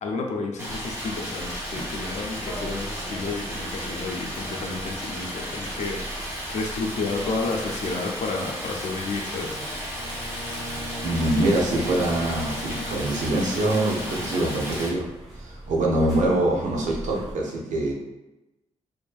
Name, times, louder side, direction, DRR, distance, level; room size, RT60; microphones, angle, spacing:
voice 1, 0.0-6.1 6.5-9.6, left 3 dB, 70° left, 2 dB, 0.5 m, -31 dB
Stream, 0.6-14.9, equal, 20° right, 0.9 m, -34 dB
sound 1, 0.7-17.3, right 1 dB, ahead, 1.4 m, -40 dB
Bowed string instrument, 9.9-15.4, left 1 dB, 45° right, 0.9 m, -39 dB
voice 2, 11.0-15.1 15.4-17.9, right 1 dB, 85° right, -1 dB, 0.6 m, -24 dB
2.5 x 2.5 x 2.3 m, 0.99 s
cardioid pair, 85°, 12 cm